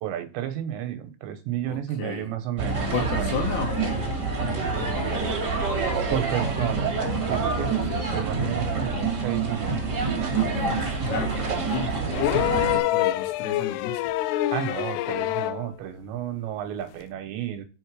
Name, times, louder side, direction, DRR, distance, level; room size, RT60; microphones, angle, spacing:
voice 1, 0.0-3.3 6.1-6.9 7.3-7.9 8.1-9.8 14.5-17.7, right 11 dB, 75° right, 3.2 m, -31 dB
voice 2, 1.7-2.3 2.9-4.3 4.8-5.5 7.6-8.2 10.3-14.1, left 7 dB, 65° left, 3.6 m, -34 dB
sound 1, 2.6-12.8, right 4 dB, 30° right, 2.0 m, -27 dB
sound 2, 12.1-15.7 17.0-17.1, left 15 dB, 90° left, 2.3 m, -26 dB
7.4 x 4.5 x 4.7 m
omnidirectional pair, 5.4 m